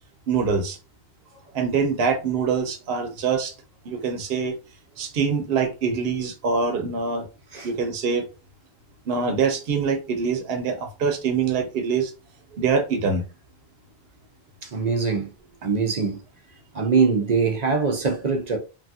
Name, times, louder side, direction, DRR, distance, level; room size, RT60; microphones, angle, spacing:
voice 1, 0.3-0.8 1.5-3.5 3.8-4.5 5.0-7.3 7.6-8.2 9.0-12.1 12.6-13.2, right 5 dB, 70° right, 0.9 m, -24 dB
voice 2, 14.6-15.3 15.6-16.2 16.7-18.6, right 5 dB, 50° right, 0.6 m, -22 dB
3.1 x 2.3 x 2.6 m
omnidirectional pair, 1.1 m